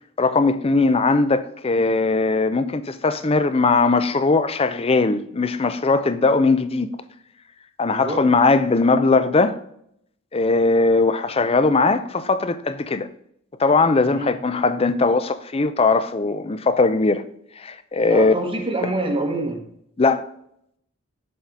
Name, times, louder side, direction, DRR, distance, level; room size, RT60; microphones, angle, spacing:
voice 1, 0.2-7.0 7.8-9.6 10.3-13.1 13.6-17.2 17.6-18.3 20.0-20.3, left 3 dB, 25° left, 0.5 m, -19 dB
voice 2, 7.9-8.3 14.0-14.3 18.1-19.7, right 2 dB, 25° right, 0.9 m, -26 dB
7.6 x 4.1 x 4.6 m
head